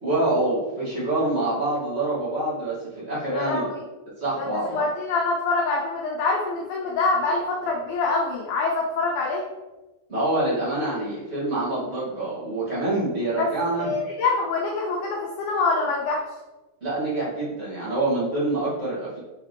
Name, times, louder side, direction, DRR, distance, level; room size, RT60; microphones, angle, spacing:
voice 1, 0.0-3.7 4.2-4.8 10.1-13.9 16.8-19.2, right 2 dB, 45° right, -11 dB, 0.8 m, -26 dB
voice 2, 3.3-3.8 4.4-9.4 13.4-13.5 13.8-16.3, left 3 dB, 85° left, -1 dB, 2.0 m, -25 dB
6.3 x 4.7 x 3.2 m, 1.1 s
omnidirectional pair, 4.9 m